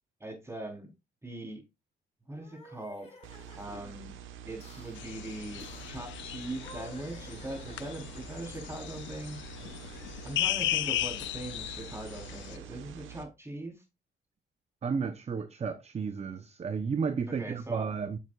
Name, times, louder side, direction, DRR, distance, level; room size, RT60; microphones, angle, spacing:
voice 1, 0.2-0.9 1.2-1.6 2.3-3.1 3.5-4.2 4.4-9.7 10.2-13.8 17.3-17.9, right 1 dB, 15° right, 3.8 m, -41 dB
sound 1, 2.3-4.0 4.6-5.0 5.6-6.0 6.5-8.2, left 2 dB, 30° left, 3.4 m, -52 dB
sound 2, 3.2-13.2, right 9 dB, 80° right, 1.2 m, -47 dB
sound 3, 5.0-12.6, left 14 dB, 70° left, 0.4 m, -36 dB
voice 2, 14.8-18.2, right 5 dB, 35° right, 0.7 m, -32 dB
8.0 x 7.3 x 2.4 m
cardioid pair, 90°, 20 cm